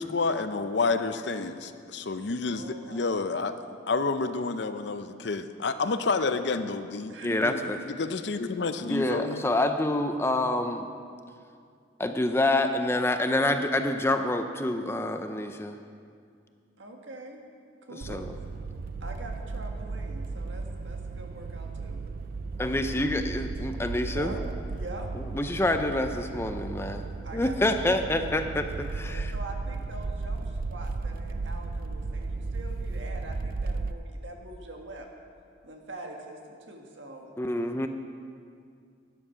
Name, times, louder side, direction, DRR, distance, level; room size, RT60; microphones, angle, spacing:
voice 1, 0.0-3.5 3.9-9.4, left 4 dB, 60° left, 10 dB, 0.6 m, -29 dB
voice 2, 2.5-3.5 7.1-7.3 16.8-17.4 17.9-18.3 19.0-22.0 24.0-24.4 24.7-25.1 27.2-28.4 29.1-35.1 35.6-37.3, right 1 dB, 75° right, 2 dB, 1.5 m, -44 dB
voice 3, 7.2-7.8 8.9-10.9 12.0-15.8 17.9-18.3 22.6-24.3 25.1-27.0 27.3-29.3 37.4-37.9, left 1 dB, 15° left, 7 dB, 0.5 m, -27 dB
sound 1, 18.0-33.9, right 3 dB, 50° right, 0.4 m, -35 dB
12.5 x 9.9 x 5.7 m, 2.3 s
head